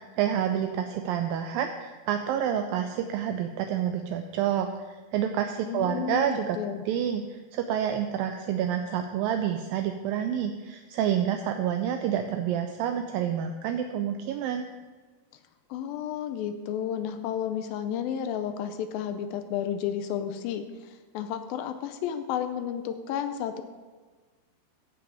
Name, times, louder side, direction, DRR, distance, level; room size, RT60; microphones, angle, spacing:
voice 1, 0.0-6.6 6.9-14.7, right 9 dB, 85° right, 6 dB, 2.0 m, -28 dB
voice 2, 5.7-6.8 15.7-23.6, left 9 dB, 80° left, 9 dB, 2.2 m, -32 dB
15.5 x 5.9 x 4.9 m, 1.4 s
omnidirectional pair, 4.6 m